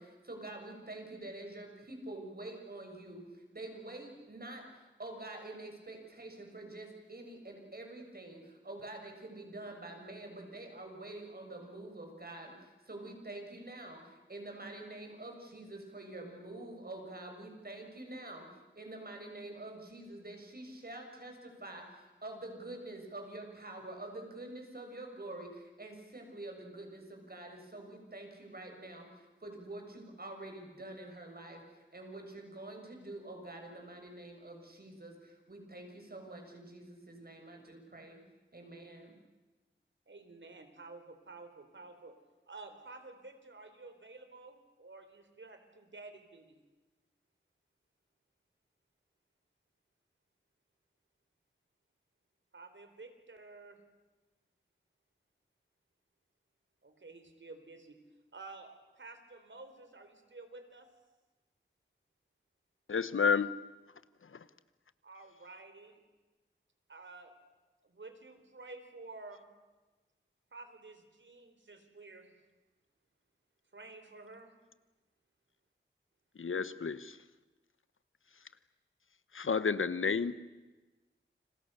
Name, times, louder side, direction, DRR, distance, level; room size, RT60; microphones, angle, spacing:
voice 1, 0.0-18.5 18.8-38.2 38.5-39.1, right 2 dB, 50° right, 3 dB, 6.9 m, -47 dB
voice 2, 40.1-42.2 42.5-46.6 52.5-53.8 56.8-58.0 58.3-60.9 65.0-66.0 66.9-67.3 67.8-69.5 70.5-72.3 73.7-74.5, right 3 dB, 70° right, 8 dB, 4.0 m, -51 dB
voice 3, 62.9-63.6 64.3-64.4 76.4-77.2 79.3-80.3, left 5 dB, 90° left, 15 dB, 1.1 m, -31 dB
29.5 x 27.0 x 6.8 m, 1.2 s
wide cardioid pair, 65°, 20 cm